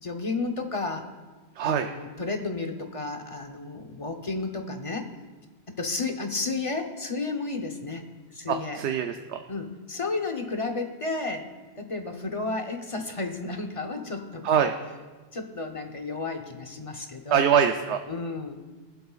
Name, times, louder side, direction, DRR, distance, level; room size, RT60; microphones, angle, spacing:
voice 1, 0.0-1.1 1.6-5.1 5.7-8.1 8.3-8.8 9.5-11.5 11.8-14.7 15.3-17.5 18.1-18.6, left 3 dB, 30° left, 4 dB, 0.9 m, -32 dB
voice 2, 1.6-1.9 8.5-9.4 14.4-14.7 17.3-18.0, right 8 dB, 75° right, 6 dB, 0.9 m, -23 dB
23.5 x 7.8 x 2.4 m, 1.4 s
omnidirectional pair, 1.2 m